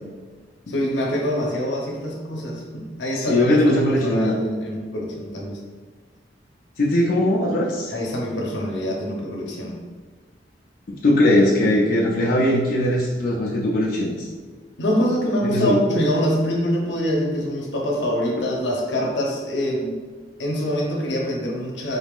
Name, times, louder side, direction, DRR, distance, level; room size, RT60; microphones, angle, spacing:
voice 1, 0.7-5.6 7.9-9.8 14.8-20.0 20.4-22.0, equal, 85° left, -1 dB, 0.8 m, -25 dB
voice 2, 3.2-4.3 6.8-7.9 11.0-14.3 15.4-15.8, left 1 dB, 50° left, -4 dB, 0.5 m, -20 dB
4.0 x 3.6 x 2.4 m, 1.5 s
head